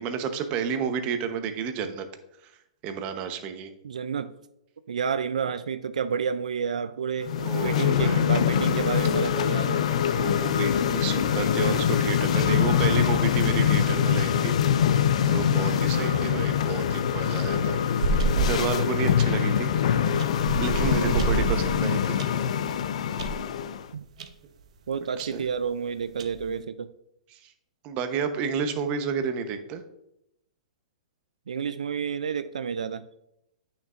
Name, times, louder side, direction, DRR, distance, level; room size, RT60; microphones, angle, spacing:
voice 1, 0.0-2.0 2.8-3.7 7.4-8.2 10.1-14.9 15.3-17.8 18.3-19.7 20.1-20.2 20.6-22.2 25.2-25.4 27.3-27.4 27.8-29.8, right 6 dB, 35° right, 8 dB, 0.9 m, -31 dB
voice 2, 3.8-4.3 4.9-7.3 7.6-9.9 15.9-16.4 21.0-21.4 23.9-24.1 24.9-26.9 31.5-33.1, right 6 dB, 90° right, 12 dB, 0.3 m, -30 dB
sound 1, 7.2-23.9, left 8 dB, 65° left, 0.5 m, -24 dB
sound 2, 17.3-18.7 19.2-19.5 20.2-22.3 22.8-22.9 23.2-23.5 24.2-24.3 24.6-24.7 25.2-25.3 26.0-26.5, right 4 dB, 65° right, 0.8 m, -28 dB
8.7 x 6.5 x 2.5 m, 0.82 s
hypercardioid pair, 135°, 4 cm